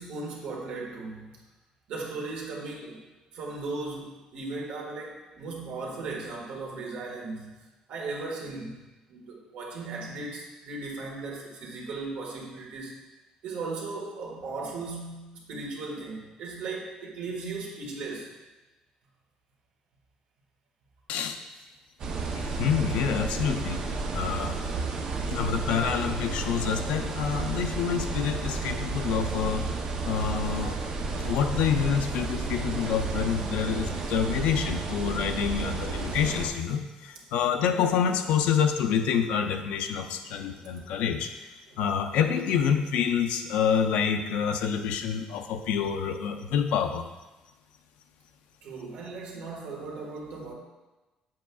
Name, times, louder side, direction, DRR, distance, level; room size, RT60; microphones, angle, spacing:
voice 1, 0.0-1.3 1.9-3.0 3.3-7.5 7.9-8.8 9.1-13.0 13.4-18.3 40.3-40.9 48.6-50.5, right 3 dB, 70° right, -2 dB, 1.7 m, -37 dB
sound 1, 22.0-36.5, right 4 dB, 40° right, 0.7 m, -32 dB
voice 2, 22.3-23.8 24.1-24.6 25.3-29.7 30.0-30.9 31.2-41.5 41.8-47.1, left 7 dB, 75° left, 6 dB, 0.6 m, -27 dB
7.9 x 7.5 x 2.3 m, 1.1 s
cardioid pair, 175°, 2 cm